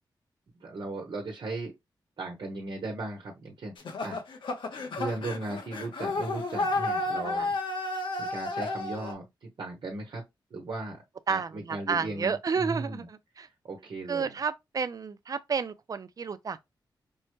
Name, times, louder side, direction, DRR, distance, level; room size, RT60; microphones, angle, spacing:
voice 1, 0.6-1.7 2.2-3.7 4.0-4.2 4.9-7.6 8.2-9.2 9.6-10.2 10.5-11.0 11.3-13.1 13.6-14.3, right 2 dB, 70° right, 1.0 m, -37 dB
sound 1, 3.8-9.1, left 2 dB, 85° left, 0.9 m, -32 dB
voice 2, 11.3-13.5 14.1-16.6, right 5 dB, 50° right, 0.5 m, -31 dB
5.3 x 2.2 x 3.0 m
cardioid pair, 85°, 8 cm